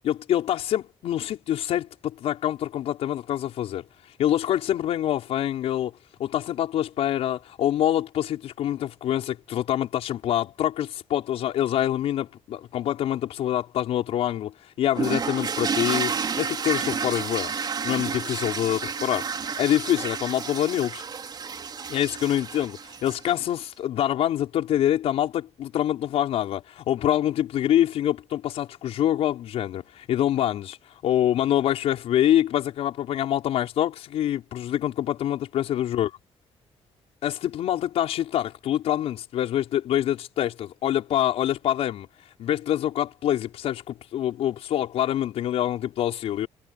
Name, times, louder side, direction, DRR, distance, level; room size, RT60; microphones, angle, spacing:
voice 1, 0.0-3.9 4.2-5.9 6.2-16.1 16.4-17.5 17.8-21.0 21.9-30.8 31.0-36.1 37.2-42.1 42.4-46.5, left 11 dB, 80° left, 5.4 m, -25 dB
sound 1, 15.0-23.4, right 6 dB, 40° right, 4.2 m, -30 dB
cardioid pair, 105°, 10 cm